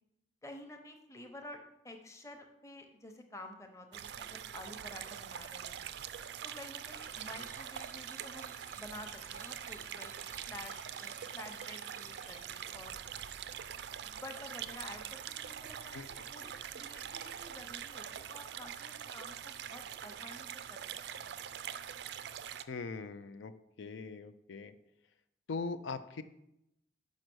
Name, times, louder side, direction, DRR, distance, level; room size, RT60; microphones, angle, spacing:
voice 1, 0.4-1.6 1.8-5.8 6.4-10.1 10.5-13.0 14.0-16.0 16.3-20.8 21.2-21.5, left 1 dB, 15° left, 4 dB, 0.8 m, -50 dB
sound 1, 3.9-22.6, right 9 dB, 65° right, 0.4 m, -44 dB
sound 2, 6.9-12.5, left 2 dB, 40° left, 1.0 m, -58 dB
voice 2, 22.7-23.5 23.8-24.7 25.5-26.2, left 4 dB, 80° left, 10 dB, 0.4 m, -40 dB
6.5 x 5.3 x 6.1 m, 0.83 s
head